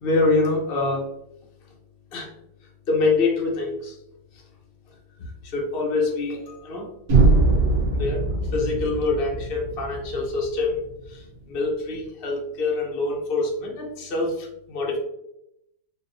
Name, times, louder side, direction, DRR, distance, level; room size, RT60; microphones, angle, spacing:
voice 1, 0.0-1.1 2.1-2.3 2.9-4.0 4.3-4.4 4.9-6.9 7.9-8.2 8.5-15.0, left 3 dB, 65° left, -2 dB, 0.5 m, -25 dB
sound 1, 7.1-11.0, right 3 dB, 60° right, 1.5 m, -22 dB
4.4 x 2.4 x 2.6 m, 0.80 s
omnidirectional pair, 2.1 m